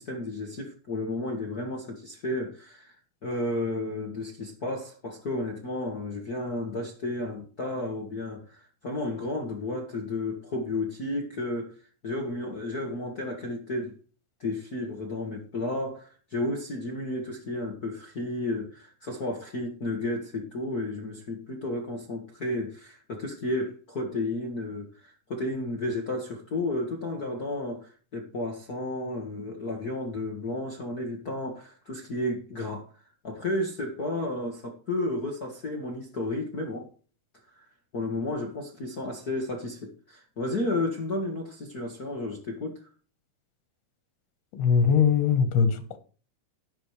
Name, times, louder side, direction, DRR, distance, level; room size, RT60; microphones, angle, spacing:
voice 1, 0.0-14.0 14.4-36.9 37.5-37.6 37.9-42.9, left 2 dB, 50° left, 1.1 m, -32 dB
voice 2, 44.5-46.0, left 6 dB, 85° left, 3.4 m, -21 dB
12.5 x 10.0 x 3.3 m
omnidirectional pair, 4.5 m